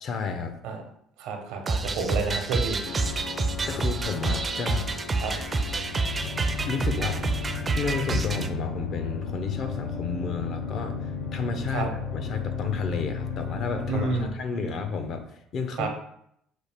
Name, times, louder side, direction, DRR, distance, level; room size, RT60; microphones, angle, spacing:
voice 1, 0.0-0.5 3.7-4.9 6.7-7.2 7.5-15.9, left 5 dB, 55° left, 6 dB, 0.7 m, -32 dB
voice 2, 1.2-2.8 5.2-5.3 11.7-11.9 13.9-14.3 15.8-15.9, right 5 dB, 85° right, 3 dB, 0.9 m, -29 dB
sound 1, 1.7-8.5, right 3 dB, 25° right, 0.4 m, -28 dB
sound 2, 2.8-14.3, left 5 dB, 85° left, 0.7 m, -34 dB
6.1 x 2.4 x 3.5 m, 0.71 s
cardioid pair, 105°, 0 cm